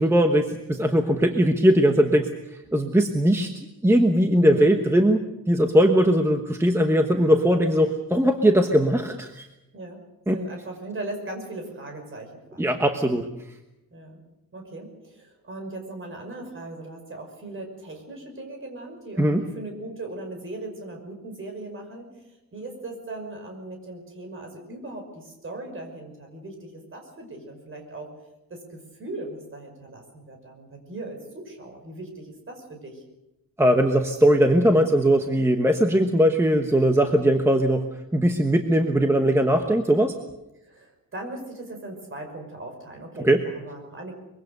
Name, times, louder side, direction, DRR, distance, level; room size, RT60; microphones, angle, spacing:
voice 1, 0.0-2.3 2.7-9.5 10.3-10.4 12.6-13.3 19.2-19.4 33.6-37.9 38.1-40.1 43.2-43.4, equal, 10° right, 4 dB, 1.1 m, -20 dB
voice 2, 10.3-12.6 13.9-14.2 14.5-28.1 28.5-33.0 40.7-44.1, right 2 dB, 35° right, 3 dB, 5.8 m, -39 dB
24.0 x 23.0 x 6.7 m, 0.92 s
wide cardioid pair, 180°, 34 cm